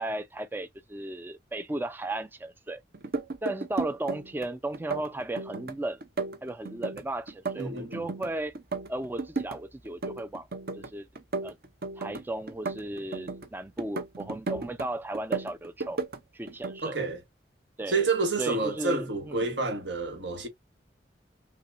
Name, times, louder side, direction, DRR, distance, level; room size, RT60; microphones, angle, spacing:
voice 1, 0.0-2.8 3.4-6.0 6.4-8.5 8.9-10.5 10.7-11.1 11.4-11.6 11.9-16.0 16.3-17.0 17.8-18.0 18.4-19.5, right 1 dB, 10° right, 0.3 m, -35 dB
sound 1, 2.9-4.5 4.7-5.7 6.0-8.3 8.5-9.6 9.8-10.9 11.1-13.5 13.8-14.9 15.1-16.2 16.5-16.8, right 3 dB, 55° right, 0.8 m, -34 dB
voice 2, 7.6-8.1 16.8-17.2 17.9-20.5, right 3 dB, 80° right, 1.5 m, -29 dB
5.7 x 2.4 x 2.5 m
head